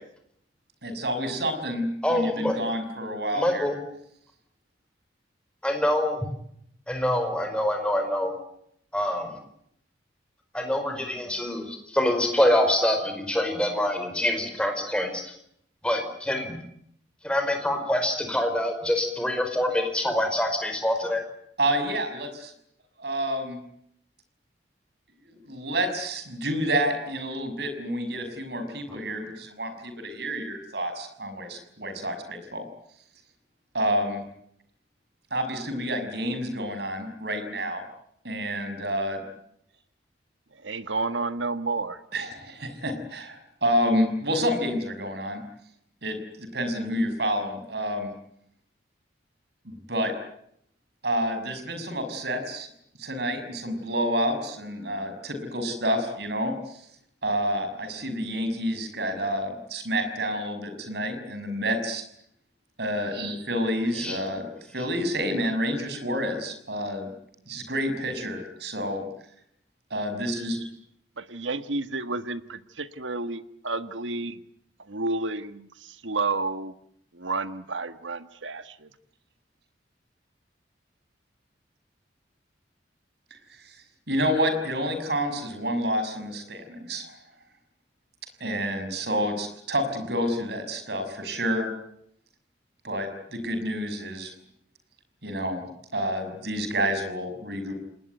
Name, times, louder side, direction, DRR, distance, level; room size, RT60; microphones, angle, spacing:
voice 1, 0.8-3.7 21.6-22.5 23.0-23.6 25.3-32.7 33.7-34.2 35.3-37.8 38.2-39.2 42.1-45.4 46.0-48.1 49.6-50.1 51.0-52.7 53.0-56.9 57.2-62.0 62.8-64.5 64.7-67.1 67.5-69.0 69.9-70.7 83.3-83.8 84.1-87.2 88.4-91.7 92.8-94.3 95.2-95.6 95.9-97.7, equal, 60° right, 9 dB, 6.1 m, -29 dB
voice 2, 2.0-2.5 3.3-3.8 5.6-6.3 6.9-8.3 8.9-9.3 10.5-15.2 15.8-16.6 17.2-21.2 64.0-64.2, left 1 dB, 5° left, 5 dB, 5.0 m, -25 dB
voice 3, 40.6-42.0 71.2-74.4 74.9-76.7 77.1-78.9, right 3 dB, 85° right, 11 dB, 1.6 m, -31 dB
28.5 x 20.0 x 9.3 m, 0.73 s
head